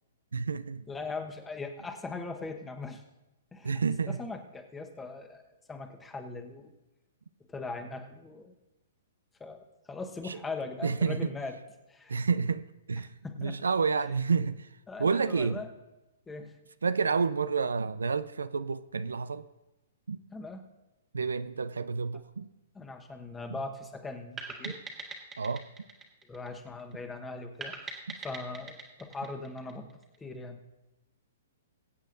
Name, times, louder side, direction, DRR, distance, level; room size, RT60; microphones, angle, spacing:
voice 1, 0.3-0.8 3.6-4.2 10.3-10.4 10.8-11.3 12.1-13.1 13.4-14.7 15.0-15.6 16.8-19.5 20.1-20.2 21.1-22.5 24.6-24.7 25.4-25.7 28.1-28.2, right 5 dB, 85° right, 0.4 m, -29 dB
voice 2, 0.9-3.0 3.5-6.7 7.5-8.5 9.4-11.6 11.9-12.2 13.2-13.6 14.0-14.1 14.9-15.7 16.3-16.5 20.3-20.7 22.7-24.8 26.3-28.0 28.2-29.9 30.2-30.6, left 3 dB, 10° left, 1.2 m, -40 dB
sound 1, 24.4-26.9 27.6-30.2, right 4 dB, 15° right, 1.7 m, -43 dB
22.5 x 8.1 x 2.6 m
hypercardioid pair, 125°, 0 cm